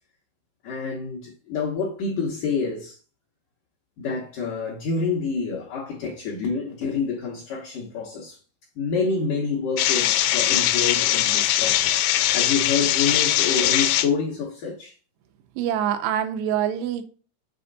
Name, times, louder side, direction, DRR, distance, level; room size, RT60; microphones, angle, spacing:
voice 1, 0.6-3.0 4.0-8.4 8.8-12.1 12.3-15.0, left 5 dB, 70° left, 2.1 m, -27 dB
sound 1, 9.8-14.1, left 13 dB, 90° left, 2.9 m, -21 dB
voice 2, 15.6-17.0, right 10 dB, 85° right, 2.7 m, -25 dB
6.9 x 4.2 x 4.0 m
omnidirectional pair, 5.0 m